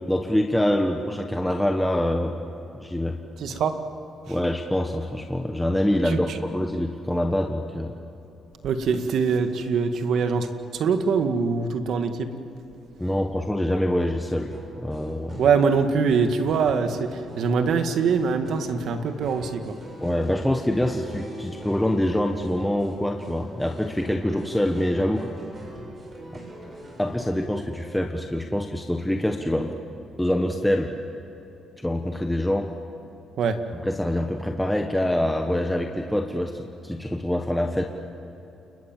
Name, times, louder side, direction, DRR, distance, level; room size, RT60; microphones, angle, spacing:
voice 1, 0.1-2.4 2.8-3.2 4.3-8.0 13.0-14.5 14.8-15.4 20.0-25.3 27.0-29.8 30.2-30.9 31.8-32.7 33.8-37.9, left 1 dB, 5° left, 3 dB, 1.5 m, -25 dB
voice 2, 3.4-3.8 6.0-6.2 8.6-10.5 10.7-12.3 15.4-19.8 33.4-33.6, right 5 dB, 70° right, 7 dB, 2.1 m, -23 dB
sound 1, 14.5-27.1, right 1 dB, 35° right, 7.9 m, -42 dB
29.0 x 21.5 x 7.5 m, 3.0 s
cardioid pair, 90°, 0 cm